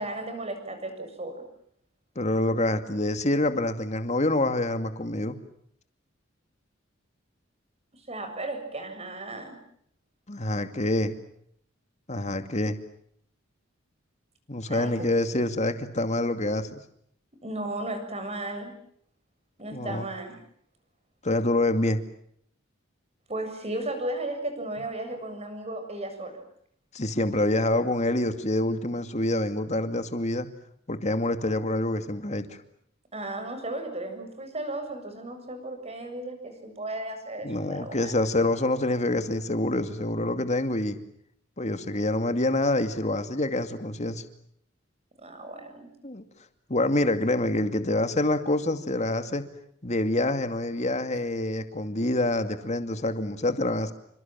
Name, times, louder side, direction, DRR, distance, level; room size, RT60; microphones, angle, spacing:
voice 1, 0.0-1.4 7.9-9.6 14.7-15.1 17.4-18.7 19.6-20.4 23.3-26.4 33.1-38.1 45.2-45.9 51.1-51.2, right 2 dB, 30° right, 7 dB, 7.3 m, -35 dB
voice 2, 2.2-5.4 10.3-11.2 12.1-12.8 14.5-16.8 19.7-20.1 21.2-22.0 26.9-30.5 30.9-32.6 37.4-41.0 41.6-44.2 46.0-46.2 46.7-49.4 49.8-53.9, left 1 dB, 35° left, 9 dB, 2.5 m, -26 dB
29.0 x 26.5 x 7.6 m, 0.68 s
head